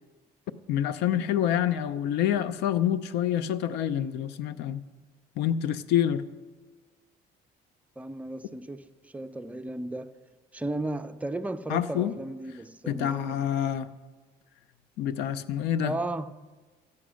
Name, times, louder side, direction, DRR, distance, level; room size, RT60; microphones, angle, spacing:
voice 1, 0.7-4.8 5.4-6.3 11.7-12.1 12.9-13.9 15.0-16.0, left 10 dB, 85° left, 0.5 m, -27 dB
voice 2, 8.0-10.2 10.5-13.5 15.8-16.4, right 2 dB, 10° right, 0.5 m, -35 dB
13.5 x 8.5 x 6.3 m
cardioid pair, 110°, 17 cm